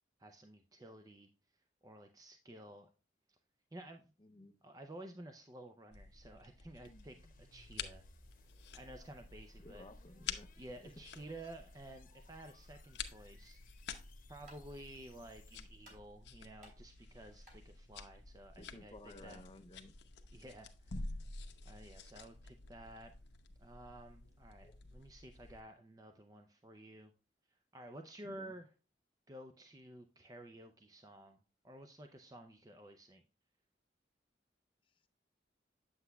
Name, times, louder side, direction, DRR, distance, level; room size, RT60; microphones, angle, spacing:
voice 1, 0.2-1.3 1.8-2.9 3.3-3.4 3.7-4.1 4.6-8.1 8.7-9.9 10.6-13.6 14.3-19.4 20.3-21.2 21.7-23.1 23.6-27.1 27.5-28.7 29.3-31.4 31.6-33.2, right 1 dB, 20° right, 6 dB, 0.4 m, -53 dB
voice 2, 4.2-4.6 9.6-10.5 18.6-19.9 24.6-24.8 28.2-28.5, left 1 dB, 30° left, 8 dB, 0.5 m, -55 dB
sound 1, 5.9-25.6, left 4 dB, 75° left, 0.8 m, -50 dB
sound 2, 6.8-15.9, left 2 dB, 45° left, 0.9 m, -62 dB
sound 3, 14.2-19.2, right 1 dB, 45° right, 3.0 m, -65 dB
8.1 x 7.8 x 2.2 m, 0.35 s
head